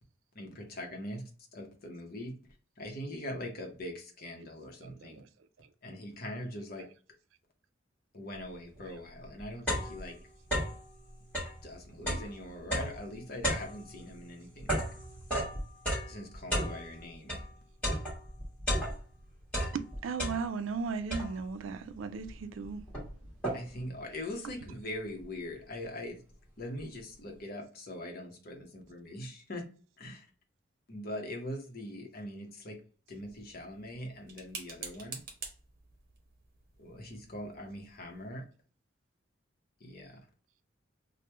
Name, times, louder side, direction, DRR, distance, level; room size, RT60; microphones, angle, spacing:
voice 1, 0.3-1.2 1.5-2.3 2.8-5.2 5.8-6.9 8.1-10.1 11.6-14.8 16.1-17.4 23.5-26.2 26.6-29.6 30.0-30.3 30.9-32.8 33.1-35.2 36.8-38.4 39.8-40.2, left 1 dB, 50° left, 0.8 m, -42 dB
voice 2, 4.8-5.3 5.6-5.7 6.4-6.5 6.8-6.9 19.7-22.9 24.4-24.7, right 5 dB, 80° right, 0.4 m, -37 dB
sound 1, 8.8-8.9 9.2-10.9 11.2-17.5 17.8-19.2 19.5-20.7 21.1-21.6 22.3-22.4 22.6-23.9, equal, 10° left, 1.5 m, -34 dB
sound 2, 33.1-38.3, right 5 dB, 50° right, 0.8 m, -48 dB
3.0 x 2.1 x 3.2 m
head